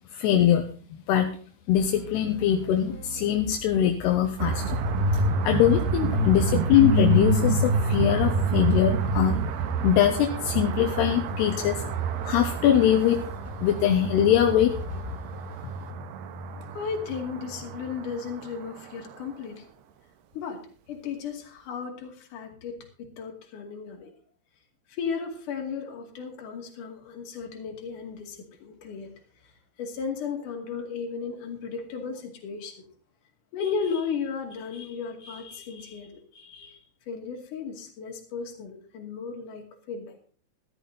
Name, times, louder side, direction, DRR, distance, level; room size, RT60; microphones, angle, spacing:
voice 1, 0.1-0.6 1.1-1.3 1.7-4.8 5.1-9.3 9.8-11.8 12.2-13.2 13.6-14.7, left 10 dB, 75° left, 4 dB, 2.6 m, -22 dB
sound 1, 1.8-15.0, right 3 dB, 5° left, 1.5 m, -43 dB
sound 2, 4.4-18.3, right 3 dB, 70° right, 2.7 m, -27 dB
voice 2, 16.6-19.6 20.3-24.1 24.9-29.1 29.4-29.5 29.8-32.8 33.5-36.8 37.1-40.1, left 6 dB, 50° left, 2 dB, 3.3 m, -35 dB
13.5 x 13.5 x 4.0 m, 0.40 s
omnidirectional pair, 5.8 m